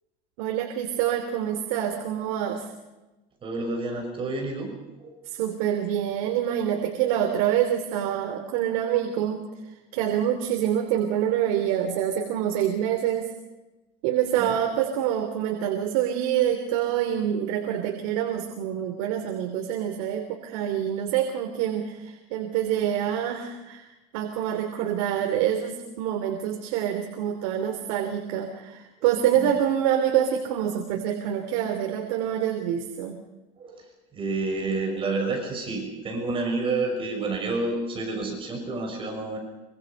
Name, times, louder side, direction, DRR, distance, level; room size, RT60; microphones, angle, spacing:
voice 1, 0.4-2.7 5.2-13.3 14.0-33.2, right 10 dB, 80° right, 4 dB, 3.2 m, -26 dB
voice 2, 3.4-4.7 5.0-5.2 14.4-14.5 29.4-29.5 33.6-33.8 34.1-39.4, right 3 dB, 30° right, 2 dB, 6.2 m, -29 dB
26.0 x 25.0 x 5.5 m, 1.1 s
cardioid pair, 145°, 18 cm